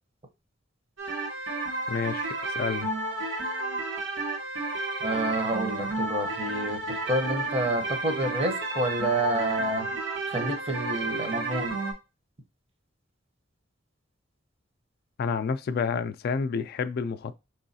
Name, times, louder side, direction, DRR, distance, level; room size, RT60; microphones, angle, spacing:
sound 1, 1.0-11.9, right 2 dB, 85° right, 1.3 m, -31 dB
voice 1, 1.9-2.3 2.6-2.9 15.2-17.3, left 5 dB, 55° left, 0.3 m, -29 dB
voice 2, 5.0-9.9 10.3-11.8, right 2 dB, 30° right, 0.8 m, -29 dB
4.6 x 3.1 x 2.7 m
head